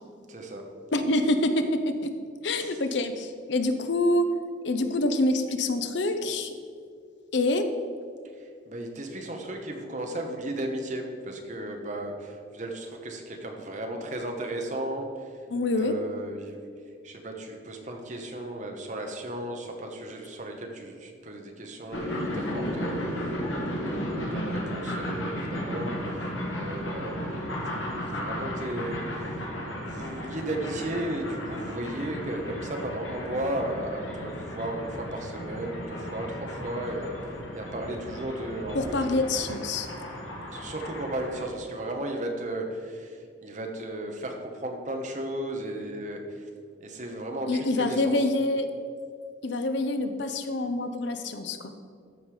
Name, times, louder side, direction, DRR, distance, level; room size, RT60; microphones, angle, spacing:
voice 1, 0.3-0.6 2.6-2.7 8.4-15.4 15.7-16.6 17.0-23.3 23.7-26.3 26.6-27.4 27.7-29.4 29.8-39.2 40.5-46.5 46.8-48.3, right 1 dB, 40° right, 3 dB, 1.1 m, -35 dB
voice 2, 0.9-2.1 2.4-4.3 4.6-6.6 7.3-7.7 15.5-16.0 38.7-39.9 47.5-48.7 49.4-51.7, left 2 dB, 70° left, 8 dB, 0.7 m, -26 dB
sound 1, 21.9-41.4, equal, 90° left, 2.1 m, -34 dB
13.5 x 5.4 x 4.9 m, 2.2 s
head